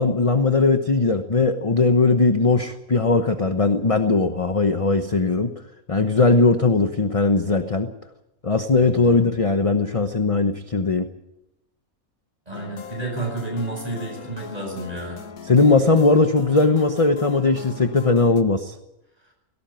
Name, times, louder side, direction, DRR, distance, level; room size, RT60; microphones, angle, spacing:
voice 1, 0.0-5.5 5.9-7.9 8.4-11.1 15.5-18.8, left 3 dB, 25° left, 7 dB, 1.0 m, -19 dB
voice 2, 8.7-9.2 12.5-15.2, right 2 dB, 25° right, 1 dB, 8.0 m, -31 dB
sound 1, 12.5-18.4, left 6 dB, 90° left, 1.7 m, -39 dB
18.0 x 18.0 x 9.1 m, 0.91 s
omnidirectional pair, 1.5 m